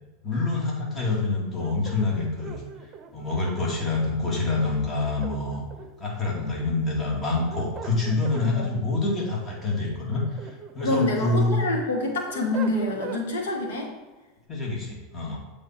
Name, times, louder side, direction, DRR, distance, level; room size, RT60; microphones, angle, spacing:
voice 1, 0.2-2.6 3.1-5.6 6.0-11.6 14.5-15.4, left 3 dB, 25° left, -3 dB, 2.1 m, -26 dB
sound 1, 1.6-3.7 5.0-6.1 7.2-8.5 9.9-11.0 11.5-13.3, right 6 dB, 30° right, 0.7 m, -40 dB
voice 2, 10.8-13.9, left 2 dB, 80° left, 1 dB, 1.6 m, -26 dB
7.8 x 3.6 x 4.4 m, 1.2 s
supercardioid pair, 115°, 0 cm